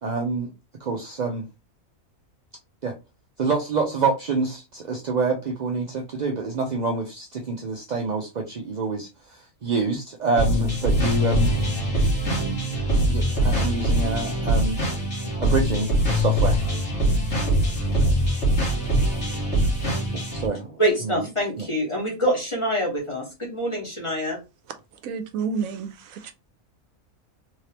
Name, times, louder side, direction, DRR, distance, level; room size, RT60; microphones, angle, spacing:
voice 1, 0.0-0.5 0.8-1.5 2.8-2.9 3.4-11.5 13.1-15.0 15.4-16.6 20.3-21.2 21.6-21.7, right 4 dB, 50° right, 0.5 m, -27 dB
sound 1, 10.4-20.5, equal, 55° left, 1.9 m, -22 dB
voice 2, 20.8-24.4, equal, 20° left, 1.5 m, -25 dB
voice 3, 25.0-26.3, right 5 dB, 80° right, 1.0 m, -30 dB
3.6 x 3.3 x 2.9 m
omnidirectional pair, 1.5 m